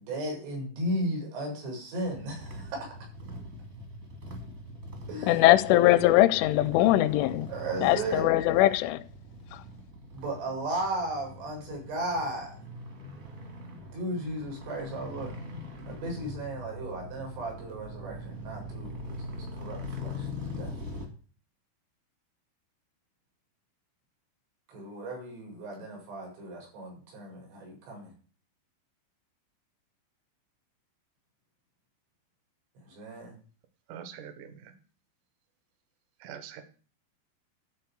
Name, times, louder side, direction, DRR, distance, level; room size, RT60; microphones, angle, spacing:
voice 1, 0.0-3.0 5.1-5.5 7.5-8.3 10.1-12.6 13.9-15.3 15.9-20.8 24.7-28.1 32.9-33.4, right 1 dB, 90° right, 7.4 m, -35 dB
sound 1, 2.0-21.1, left 1 dB, 50° right, 1.0 m, -42 dB
voice 2, 5.3-7.5 7.8-9.0, left 15 dB, 85° left, 3.0 m, -21 dB
voice 3, 33.9-34.5 36.2-36.6, right 9 dB, 70° right, 1.9 m, -43 dB
12.0 x 4.1 x 8.1 m
omnidirectional pair, 5.6 m